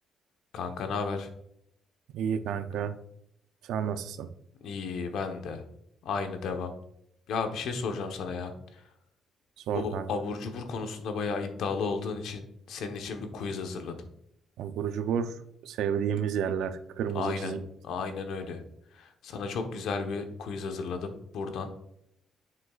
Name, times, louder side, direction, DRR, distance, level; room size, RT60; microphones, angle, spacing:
voice 1, 0.5-1.3 4.6-5.6 6.0-6.7 7.3-8.9 9.7-14.1 17.1-17.5 17.8-18.6 18.9-21.7, left 4 dB, 80° left, 6 dB, 1.0 m, -34 dB
voice 2, 2.1-2.9 3.6-4.3 9.7-10.1 14.6-15.4 15.6-17.6, right 8 dB, 85° right, 11 dB, 0.5 m, -31 dB
7.4 x 6.2 x 2.4 m, 0.75 s
cardioid pair, 90°, 0 cm